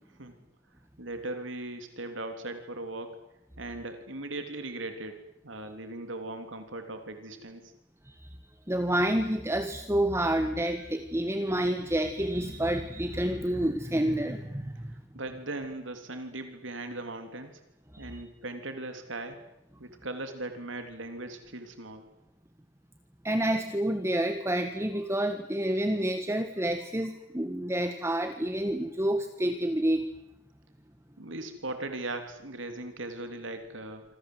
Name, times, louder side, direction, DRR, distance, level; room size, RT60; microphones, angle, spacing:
voice 1, 1.0-3.2 3.6-5.2 5.4-7.7 14.9-17.6 18.0-19.4 19.8-22.0 31.2-34.0, right 2 dB, 75° right, 7 dB, 3.1 m, -38 dB
voice 2, 8.7-14.9 17.9-18.2 23.2-30.1, right 1 dB, 15° right, 8 dB, 1.5 m, -29 dB
27.0 x 26.0 x 7.8 m, 0.87 s
head